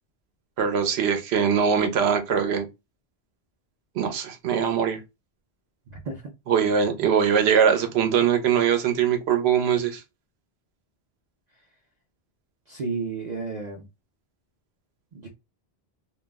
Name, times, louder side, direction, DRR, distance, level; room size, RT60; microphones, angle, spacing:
voice 1, 0.6-2.6 4.0-5.0 6.5-10.0, right 7 dB, 90° right, 0.9 m, -22 dB
voice 2, 5.9-6.2 12.7-13.9 15.1-15.3, right 4 dB, 50° right, 0.6 m, -32 dB
2.3 x 2.0 x 3.3 m
omnidirectional pair, 1.0 m